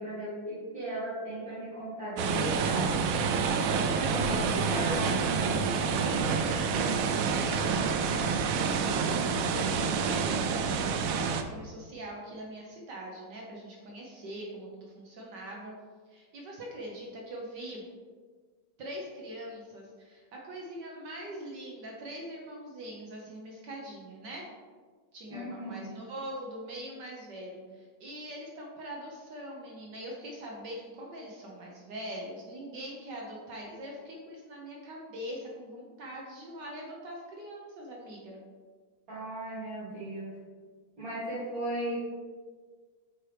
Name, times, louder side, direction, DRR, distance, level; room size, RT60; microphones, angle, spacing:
voice 1, 0.0-2.9 3.9-5.6 25.3-25.9 39.1-40.3 41.0-42.0, right 1 dB, 50° right, -11 dB, 2.3 m, -36 dB
sound 1, 2.2-11.4, right 5 dB, 85° right, 0.7 m, -28 dB
voice 2, 4.2-5.1 5.7-15.7 16.1-17.9 18.8-24.5 25.1-38.4, right 1 dB, 70° right, -2 dB, 1.6 m, -43 dB
8.7 x 4.5 x 3.4 m, 1.5 s
omnidirectional pair, 2.0 m